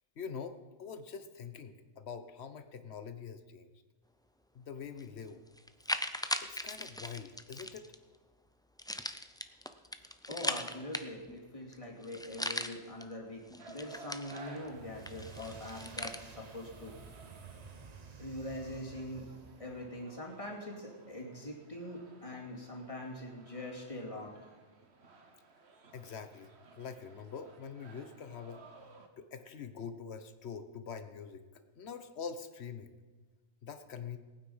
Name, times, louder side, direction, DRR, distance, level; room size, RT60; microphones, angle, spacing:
voice 1, 0.2-3.7 4.5-5.4 6.4-7.9 25.9-28.6 29.2-33.0 33.6-34.2, left 6 dB, 65° left, 9 dB, 1.2 m, -44 dB
sound 1, 5.0-5.1 5.6-8.0 8.8-11.4 11.7-11.8 12.0-13.0 13.5-14.7 15.1-16.2, left 1 dB, 5° left, 0.3 m, -38 dB
voice 2, 10.3-13.4 13.7-16.9 18.2-19.3 19.6-24.5, left 1 dB, 30° left, -1 dB, 2.7 m, -43 dB
sound 2, 13.6-29.1, right 3 dB, 65° right, 1.5 m, -57 dB
sound 3, 14.6-19.9, right 5 dB, 40° right, 0.9 m, -52 dB
19.0 x 9.1 x 5.6 m, 1.3 s
omnidirectional pair, 1.2 m